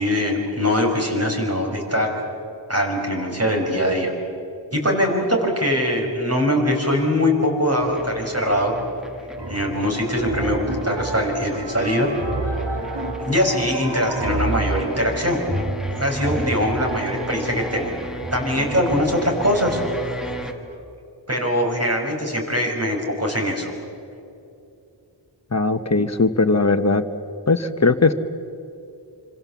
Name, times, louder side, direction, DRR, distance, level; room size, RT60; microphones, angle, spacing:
voice 1, 0.0-2.1 2.7-4.1 4.7-8.7 9.5-12.1 13.2-15.4 15.9-17.9 18.3-19.8 21.3-23.7, equal, 30° right, 1 dB, 5.8 m, -22 dB
sound 1, 7.8-20.5, equal, ahead, 1.9 m, -35 dB
sound 2, 9.4-20.7, right 2 dB, 60° right, 2.9 m, -30 dB
voice 2, 25.5-27.0 27.5-28.1, left 3 dB, 35° left, 8 dB, 1.4 m, -19 dB
27.5 x 26.0 x 7.4 m, 2.7 s
wide cardioid pair, 65°, 47 cm